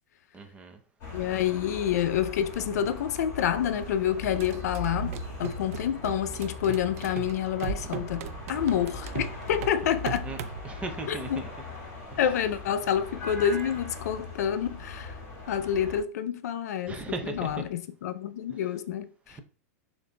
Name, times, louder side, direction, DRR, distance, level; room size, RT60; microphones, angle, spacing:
voice 1, 0.3-0.8 10.2-10.4 10.6-11.5 16.9-17.6 19.3-19.4, right 3 dB, 15° right, 0.5 m, -37 dB
sound 1, 1.0-16.0, left 2 dB, 35° left, 1.6 m, -40 dB
voice 2, 1.1-10.3 11.1-11.4 12.2-15.2 15.5-19.4, left 9 dB, 80° left, 0.4 m, -28 dB
sound 2, 4.2-10.6, right 7 dB, 65° right, 0.4 m, -38 dB
6.6 x 2.6 x 2.2 m
supercardioid pair, 140°, 9 cm